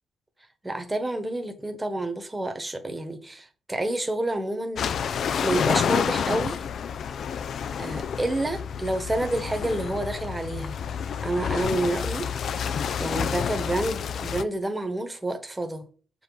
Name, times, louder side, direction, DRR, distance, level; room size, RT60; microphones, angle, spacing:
voice 1, 0.6-4.8 5.4-6.6 7.8-10.7 11.2-12.6 13.0-15.9, right 1 dB, 15° right, 1.3 m, -29 dB
sound 1, 4.8-14.4, left 7 dB, 65° left, 0.4 m, -29 dB
6.7 x 5.1 x 3.9 m
cardioid pair, 85°, 0 cm